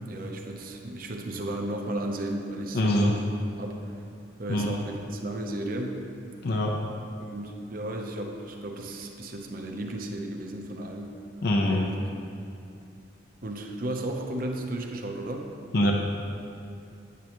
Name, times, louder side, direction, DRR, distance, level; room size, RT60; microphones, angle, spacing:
voice 1, 0.0-3.2 3.6-4.0 4.4-6.0 7.2-11.2 11.6-11.9 13.4-15.5, right 1 dB, 45° right, 2 dB, 0.7 m, -34 dB
voice 2, 2.7-3.1 4.5-4.7 6.4-6.7 11.4-11.8 15.7-15.9, left 1 dB, 55° left, 0 dB, 0.6 m, -23 dB
9.5 x 8.3 x 3.0 m, 2.6 s
head